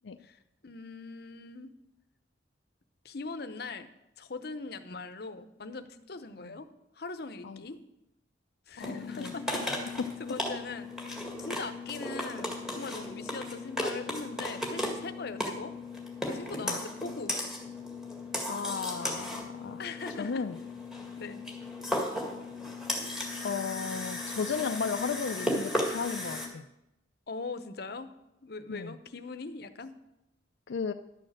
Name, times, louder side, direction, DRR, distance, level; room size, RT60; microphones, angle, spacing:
voice 1, 0.2-1.7 3.0-3.9 4.2-6.7 6.9-7.8 8.7-9.9 10.2-15.7 16.2-17.4 19.8-20.4 21.2-21.4 27.3-28.1 28.4-29.9, left 3 dB, 60° left, 10 dB, 0.8 m, -41 dB
voice 2, 8.8-9.3 16.6-16.8 18.5-19.8 20.2-20.6 23.4-26.6 28.7-28.9 30.7-30.9, left 5 dB, 85° left, 7 dB, 0.5 m, -34 dB
sound 1, 8.8-26.5, left 1 dB, 5° right, 1.8 m, -35 dB
11.5 x 6.5 x 7.6 m, 0.87 s
head